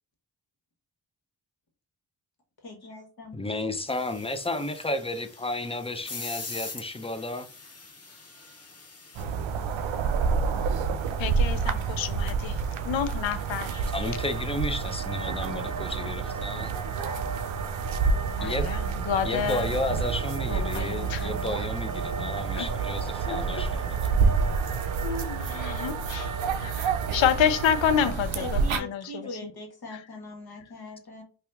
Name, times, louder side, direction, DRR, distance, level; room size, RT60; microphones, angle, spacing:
voice 1, 2.6-3.8 28.3-31.2, left 2 dB, 55° left, 1.3 m, -41 dB
voice 2, 3.3-7.5 13.9-16.8 18.4-18.7 19.2-24.1, left 2 dB, 15° left, 0.5 m, -32 dB
sound 1, 3.9-9.2, left 3 dB, 35° left, 1.0 m, -42 dB
sound 2, 9.1-28.8, right 5 dB, 90° right, 0.5 m, -29 dB
sound 3, 10.8-28.1, right 4 dB, 45° right, 0.6 m, -38 dB
voice 3, 11.2-13.8 18.1-19.7 20.5-21.3 22.5-22.7 23.3-23.6 25.0-26.3 26.6-29.5, left 8 dB, 75° left, 0.6 m, -29 dB
2.8 x 2.4 x 3.4 m
cardioid pair, 50°, 45 cm